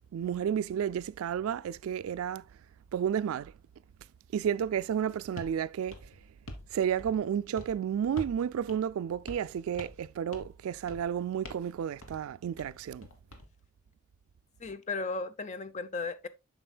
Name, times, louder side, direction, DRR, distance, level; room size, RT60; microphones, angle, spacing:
voice 1, 0.1-2.4 2.9-3.5 4.3-6.1 6.7-13.1, right 8 dB, 85° right, 0.3 m, -32 dB
sound 1, 5.4-5.6 5.9-6.7 7.0-7.3 7.6-7.8 8.2-8.4 8.7-8.8 9.3-9.5 9.8-10.1 10.3-10.6 10.9-11.1 11.4-11.7 12.0-12.2 12.6-13.5, left 1 dB, 85° left, 1.4 m, -45 dB
voice 2, 14.6-16.3, left 3 dB, 35° left, 0.5 m, -35 dB
7.7 x 6.2 x 2.3 m
head